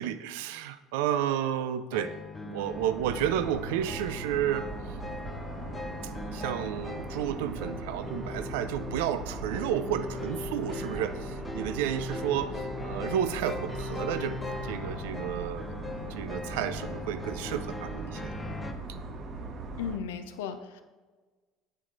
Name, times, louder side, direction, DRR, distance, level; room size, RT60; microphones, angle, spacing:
voice 1, 0.0-2.2 2.4-4.7 6.3-15.7 16.2-18.3, right 10 dB, 70° right, 12 dB, 0.3 m, -31 dB
sound 1, 1.9-18.7, left 3 dB, 20° left, 0.5 m, -40 dB
sound 2, 2.6-20.0, right 3 dB, 45° right, 0.7 m, -40 dB
voice 2, 19.8-20.8, left 6 dB, 70° left, 10 dB, 0.4 m, -35 dB
8.6 x 4.6 x 2.4 m, 1.3 s
figure-of-eight pair, 60°, 0 cm